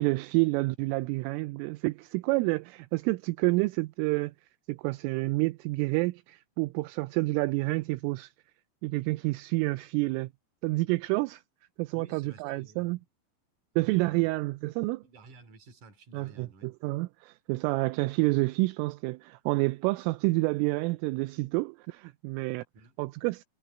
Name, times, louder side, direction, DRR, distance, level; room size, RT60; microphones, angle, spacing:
voice 1, 0.0-4.3 4.7-8.3 8.8-10.3 10.6-11.4 11.8-13.0 13.8-15.0 16.1-22.6 23.0-23.4, right 23 dB, 85° right, 3.1 m, -29 dB
voice 2, 11.9-13.1 13.7-14.3 15.0-16.7 22.7-22.9, right 3 dB, 40° right, 4.1 m, -53 dB
omnidirectional pair, 5.9 m